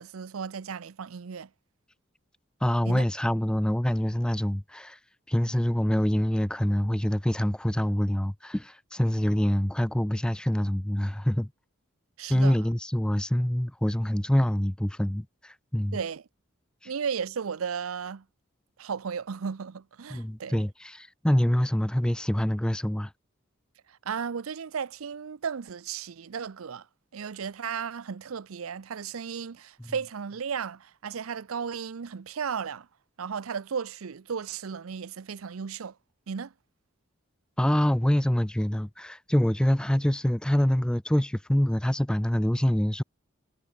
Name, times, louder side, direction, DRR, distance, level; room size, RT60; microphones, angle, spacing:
voice 1, 0.0-1.5 2.8-3.1 12.2-12.7 15.9-16.2 16.8-18.2 18.8-20.6 23.9-26.9 27.1-32.9 33.2-35.9 36.3-36.5, right 6 dB, 90° right, 0.6 m, -35 dB
voice 2, 2.6-5.0 5.3-11.5 12.3-16.0 20.1-23.1 37.6-43.0, equal, 5° left, 0.3 m, -25 dB
head